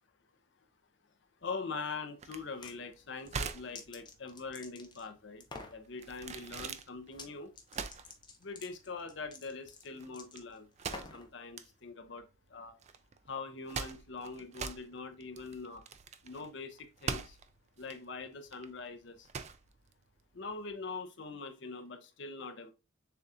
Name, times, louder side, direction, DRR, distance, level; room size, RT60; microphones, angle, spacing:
voice 1, 1.4-5.4 5.7-7.5 8.4-12.2 12.5-12.7 13.3-15.8 16.2-17.4 17.8-19.3 20.3-22.7, left 4 dB, 60° left, 0.7 m, -43 dB
sound 1, 2.2-20.7, right 5 dB, 30° right, 0.3 m, -44 dB
sound 2, 2.4-2.8 3.2-5.1 5.4-5.8 7.1-7.3 7.5-11.3, left 3 dB, 20° left, 0.6 m, -49 dB
6.8 x 2.4 x 2.6 m
head